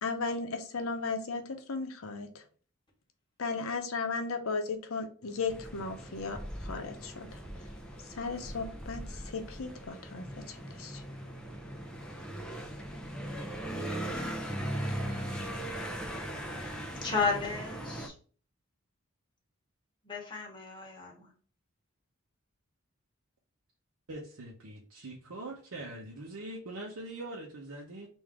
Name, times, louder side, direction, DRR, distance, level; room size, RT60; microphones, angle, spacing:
voice 1, 0.0-2.3 3.4-6.4 6.6-7.3 8.2-10.2 10.8-11.0, left 4 dB, 75° left, 5 dB, 0.7 m, -35 dB
sound 1, 5.5-18.1, right 1 dB, 5° left, 0.5 m, -39 dB
voice 2, 17.0-18.1 20.0-21.3, left 4 dB, 20° left, -1 dB, 1.1 m, -33 dB
voice 3, 24.1-28.1, right 2 dB, 90° right, -2 dB, 0.8 m, -42 dB
3.6 x 2.6 x 4.7 m, 0.43 s
head